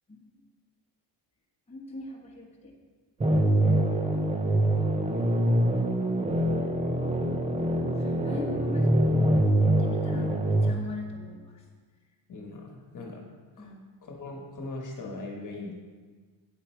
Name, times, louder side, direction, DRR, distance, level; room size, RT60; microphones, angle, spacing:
voice 1, 1.7-2.7 7.0-9.3 9.6-11.6 13.6-13.8, left 2 dB, 15° left, -3 dB, 1.3 m, -41 dB
sound 1, 3.2-10.7, right 1 dB, 15° right, 0.6 m, -24 dB
voice 2, 12.3-13.2 13.6-13.7 14.0-15.7, left 2 dB, 40° left, 0 dB, 1.4 m, -39 dB
8.4 x 8.0 x 4.6 m, 1.5 s
cardioid pair, 160°, 46 cm